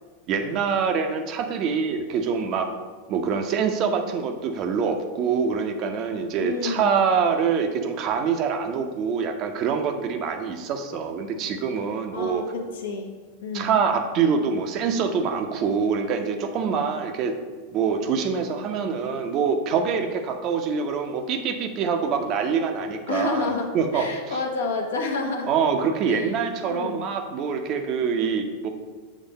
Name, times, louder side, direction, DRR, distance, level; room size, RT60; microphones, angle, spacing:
voice 1, 0.3-2.7 3.1-12.4 13.5-17.4 17.7-24.4 25.5-28.7, right 6 dB, 35° right, 6 dB, 0.6 m, -25 dB
voice 2, 6.4-6.9 12.1-13.1 13.4-13.7 23.1-25.5 26.1-26.3 26.7-27.0, left 3 dB, 65° left, 3 dB, 0.9 m, -29 dB
7.2 x 3.4 x 5.2 m, 1.4 s
figure-of-eight pair, 90°, 0 cm